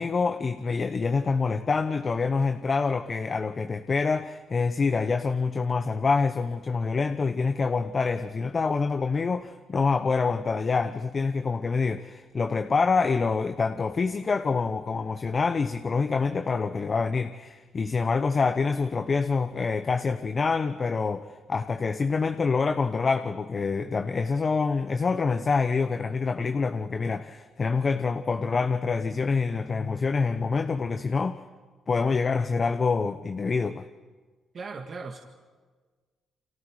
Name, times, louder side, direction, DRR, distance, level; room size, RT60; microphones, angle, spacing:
voice 1, 0.0-31.4 31.9-33.8, left 4 dB, 35° left, 9 dB, 0.9 m, -26 dB
voice 2, 34.5-35.2, right 4 dB, 45° right, 2 dB, 2.0 m, -37 dB
30.0 x 25.5 x 4.9 m, 1.4 s
cardioid pair, 90°, 0 cm